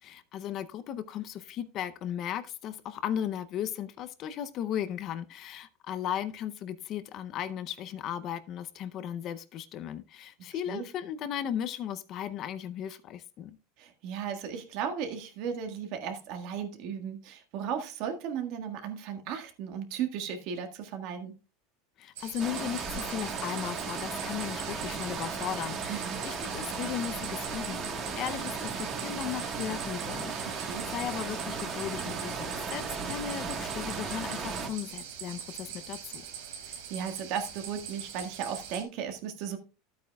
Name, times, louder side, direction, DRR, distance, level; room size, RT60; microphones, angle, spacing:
voice 1, 0.0-13.6 22.0-36.2, left 10 dB, 35° left, 0.6 m, -36 dB
voice 2, 13.8-21.3 25.9-26.2 30.6-30.9 36.7-39.6, right 7 dB, 50° right, 1.6 m, -36 dB
sound 1, 22.2-38.8, right 8 dB, 85° right, 2.9 m, -43 dB
sound 2, 22.4-34.7, right 5 dB, 25° right, 1.4 m, -36 dB
12.5 x 8.5 x 2.3 m
supercardioid pair, 155°, 0 cm